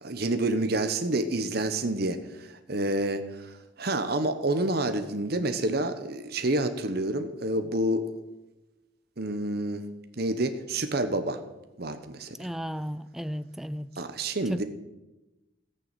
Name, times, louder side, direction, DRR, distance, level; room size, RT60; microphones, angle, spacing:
voice 1, 0.0-8.0 9.2-9.8 10.2-11.4 11.8-12.5 14.0-14.6, right 1 dB, 55° right, 1.0 m, -28 dB
voice 2, 12.4-13.9 14.5-14.6, equal, ahead, 0.4 m, -34 dB
18.0 x 6.8 x 7.8 m
head